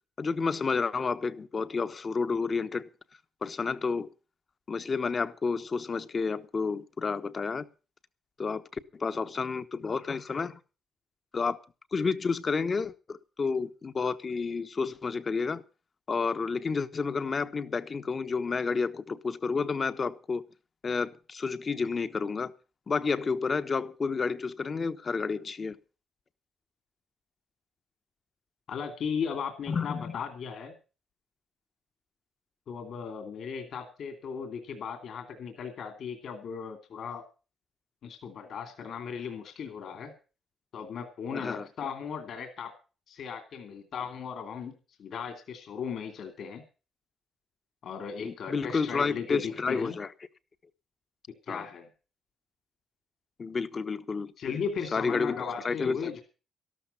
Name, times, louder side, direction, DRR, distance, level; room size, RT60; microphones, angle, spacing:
voice 1, 0.2-2.9 3.4-4.1 4.7-7.7 8.4-10.6 11.3-11.6 11.9-15.6 16.1-20.4 20.8-22.5 22.9-25.8 29.7-30.2 41.3-41.7 48.2-50.1 51.5-51.7 53.4-54.3 54.9-55.4 55.6-56.1, left 4 dB, 40° left, 1.0 m, -30 dB
voice 2, 28.7-30.7 32.7-37.2 38.0-40.1 40.7-42.7 43.1-46.6 47.8-50.0 51.5-51.9 54.4-56.2, left 6 dB, 65° left, 2.6 m, -37 dB
13.0 x 12.5 x 5.6 m
cardioid pair, 90°, 0 cm